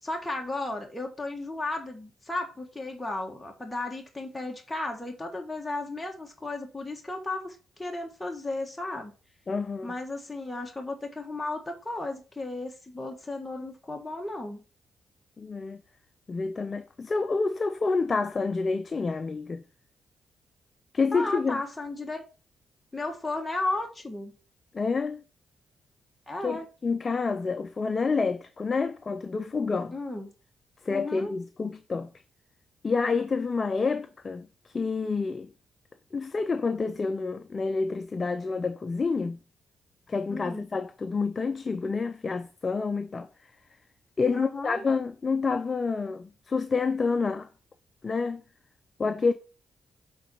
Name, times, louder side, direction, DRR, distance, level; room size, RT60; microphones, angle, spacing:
voice 1, 0.0-9.1 9.8-14.6 21.1-22.2 22.9-24.3 26.3-26.7 29.9-30.3 30.9-31.3 40.3-40.7 44.3-44.8, left 2 dB, 15° left, 1.5 m, -34 dB
voice 2, 9.5-9.9 15.4-15.8 16.3-19.6 20.9-21.6 24.7-25.2 26.4-30.0 30.8-32.1 32.8-35.5 36.1-39.4 40.1-43.5 44.2-47.5 48.0-48.4 49.0-49.3, left 4 dB, 40° left, 0.5 m, -28 dB
7.6 x 3.9 x 4.4 m
cardioid pair, 65°, 0 cm